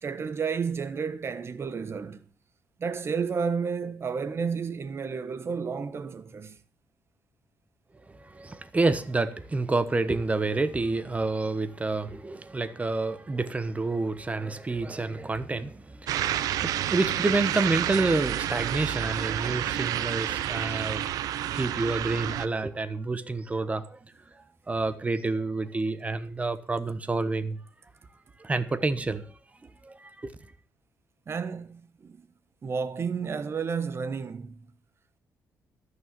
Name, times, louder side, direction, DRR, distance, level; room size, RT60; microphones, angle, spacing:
voice 1, 0.0-2.2 2.8-6.6 31.3-32.3 32.6-34.7, right 5 dB, 45° right, 1.1 m, -31 dB
voice 2, 8.1-21.2 21.5-24.0 24.3-27.6 28.4-29.2 29.6-30.3, right 3 dB, 20° right, 1.1 m, -29 dB
sound 1, 16.1-22.5, right 12 dB, 85° right, 0.7 m, -29 dB
14.0 x 6.4 x 7.5 m
cardioid pair, 90°, 6 cm